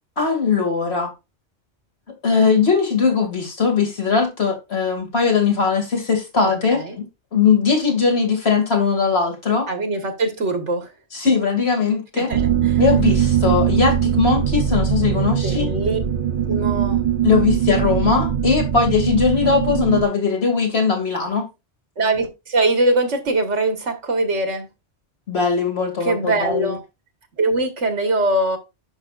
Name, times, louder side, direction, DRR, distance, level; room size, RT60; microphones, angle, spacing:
voice 1, 0.2-1.1 2.2-7.0 7.3-9.7 11.1-12.3 12.8-15.7 17.2-21.5 25.3-26.7, left 5 dB, 60° left, 2.5 m, -19 dB
voice 2, 9.7-10.9 12.1-12.8 15.4-16.0 16.5-17.0 22.0-24.7 26.0-26.8 27.4-28.6, right 2 dB, 90° right, 1.9 m, -22 dB
sound 1, 12.3-20.1, right 9 dB, 50° right, 0.9 m, -21 dB
11.0 x 5.7 x 2.5 m
omnidirectional pair, 1.2 m